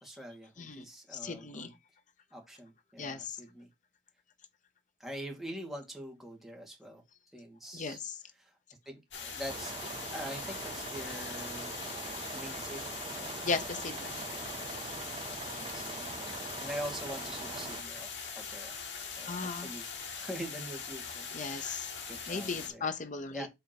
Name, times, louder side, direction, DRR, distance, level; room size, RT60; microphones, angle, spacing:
voice 1, 0.0-1.7 2.3-3.7 5.0-7.0 7.3-8.0 8.4-8.5 8.9-11.8 12.3-13.4 15.6-18.1 18.4-18.8 19.2-19.9 20.2-21.8 22.1-22.9 23.3-23.5, equal, ahead, 2.1 m, -44 dB
voice 2, 1.1-1.7 3.0-3.4 7.7-8.2 13.4-14.2 19.3-19.7 21.3-21.9 22.3-23.5, left 4 dB, 45° left, 0.8 m, -36 dB
sound 1, 9.1-22.7, left 6 dB, 80° left, 2.4 m, -42 dB
sound 2, 9.5-17.8, right 4 dB, 30° right, 0.5 m, -43 dB
6.6 x 3.6 x 6.0 m
head